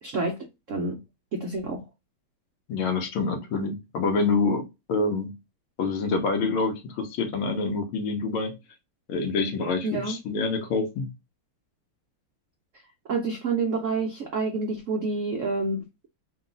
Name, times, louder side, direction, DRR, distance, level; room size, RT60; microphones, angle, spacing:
voice 1, 0.0-0.4 0.7-1.0 1.3-1.8 9.8-10.2 13.1-15.8, right 3 dB, 80° right, 0.7 m, -28 dB
voice 2, 2.7-5.3 5.8-8.5 9.1-11.1, left 4 dB, 80° left, 1.7 m, -27 dB
4.0 x 2.3 x 3.8 m
omnidirectional pair, 2.3 m